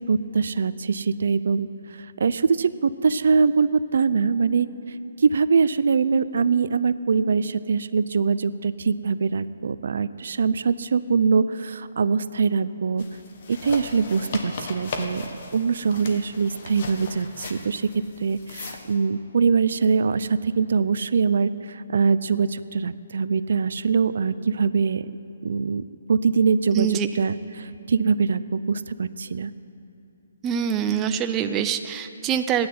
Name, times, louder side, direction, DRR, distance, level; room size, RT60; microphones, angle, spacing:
voice 1, 0.1-1.7 2.2-4.7 5.2-13.0 13.5-17.9 18.2-25.1 25.4-25.8 26.1-26.9 27.1-29.5, right 5 dB, 65° right, 15 dB, 0.5 m, -23 dB
sound 1, 13.0-18.9, left 4 dB, 45° left, 1.6 m, -37 dB
voice 2, 26.7-27.1 30.4-32.7, right 9 dB, 15° right, 8 dB, 0.5 m, -24 dB
15.0 x 9.6 x 9.4 m, 2.8 s
hypercardioid pair, 165°, 0 cm